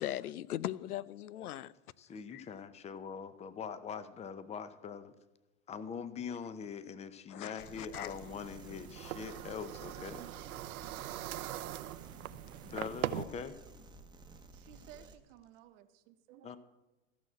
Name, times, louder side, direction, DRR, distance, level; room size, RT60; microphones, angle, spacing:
voice 1, 0.0-1.7 2.3-2.4 7.3-8.2, left 13 dB, 90° left, 0.6 m, -39 dB
voice 2, 2.0-5.1 5.7-10.3 12.6-13.6 16.4-16.6, left 6 dB, 15° left, 0.6 m, -43 dB
sound 1, 7.6-15.2, right 3 dB, 10° right, 1.0 m, -54 dB
sound 2, 7.9-13.2, right 13 dB, 75° right, 0.8 m, -41 dB
voice 3, 14.5-16.5, right 11 dB, 55° right, 1.1 m, -57 dB
14.0 x 6.1 x 7.7 m
hypercardioid pair, 115°, 43 cm